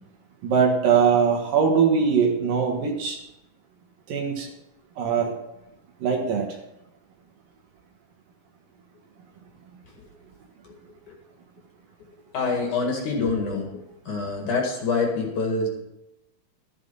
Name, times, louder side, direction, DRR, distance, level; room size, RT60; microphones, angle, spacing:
voice 1, 0.4-3.2 4.1-4.5 5.0-5.4 6.0-6.5, right 6 dB, 65° right, 2 dB, 2.8 m, -21 dB
voice 2, 12.3-15.7, left 4 dB, 55° left, 1 dB, 3.1 m, -26 dB
13.5 x 8.6 x 5.5 m, 0.88 s
omnidirectional pair, 4.7 m